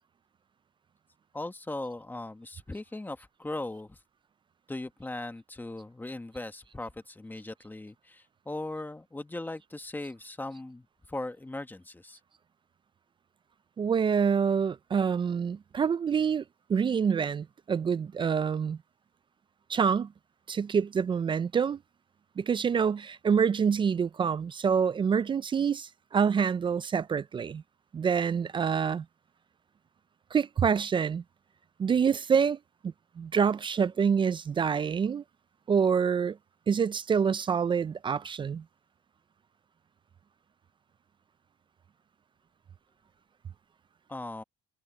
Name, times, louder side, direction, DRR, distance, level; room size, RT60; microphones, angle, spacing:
voice 1, 1.3-4.0 4.7-12.2 44.1-44.4, left 2 dB, 10° left, 1.5 m, -39 dB
voice 2, 13.8-16.4 16.7-18.8 19.7-20.1 20.5-21.8 22.4-27.6 27.9-29.0 30.3-31.2 31.8-32.6 32.8-35.2 35.7-36.4 36.7-38.6, right 6 dB, 30° right, 0.4 m, -26 dB
cardioid pair, 110°, 17 cm